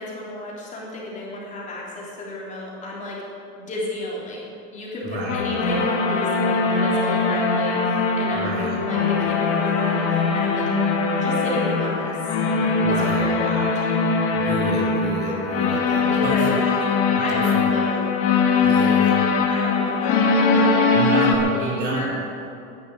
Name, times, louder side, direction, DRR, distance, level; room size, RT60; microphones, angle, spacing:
voice 1, 0.0-3.2 3.5-4.4 4.7-10.6 11.1-12.2 12.9-13.9 16.1-16.6 17.1-18.2 19.5-22.1, left 1 dB, 25° left, -5 dB, 3.4 m, -32 dB
voice 2, 5.0-5.4 8.3-8.8 12.8-13.2 14.3-16.6 17.1-17.7 18.6-19.2 20.9-22.1, right 1 dB, 30° right, -3 dB, 3.1 m, -29 dB
sound 1, 5.3-21.4, left 4 dB, 45° left, 2.2 m, -21 dB
11.0 x 11.0 x 10.0 m, 2.6 s
cardioid pair, 165°, 31 cm